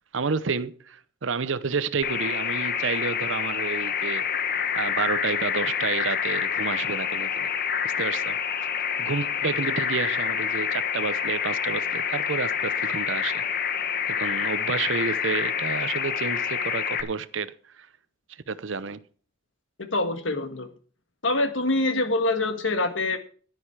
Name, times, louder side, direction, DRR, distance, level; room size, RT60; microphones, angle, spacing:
voice 1, 0.1-4.3 4.7-7.5 7.8-8.4 9.0-13.4 14.1-17.9 18.5-19.0, right 5 dB, 70° right, 0.7 m, -30 dB
sound 1, 2.0-17.0, left 7 dB, 50° left, 1.1 m, -27 dB
voice 2, 19.8-20.7 21.2-23.2, left 2 dB, 70° left, 1.7 m, -25 dB
10.5 x 10.0 x 4.8 m
head